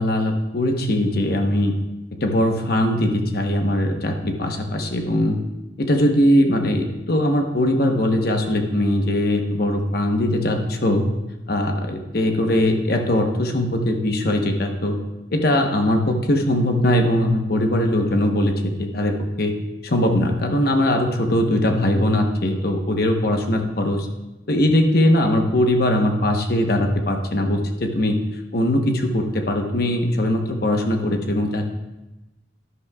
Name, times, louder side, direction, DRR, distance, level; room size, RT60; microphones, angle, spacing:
voice 1, 0.0-1.7 2.2-5.4 5.8-11.1 11.5-15.0 15.3-19.5 19.8-24.1 24.5-28.2 28.5-31.7, left 1 dB, 50° left, 4 dB, 1.0 m, -20 dB
11.5 x 11.0 x 2.3 m, 1.0 s
head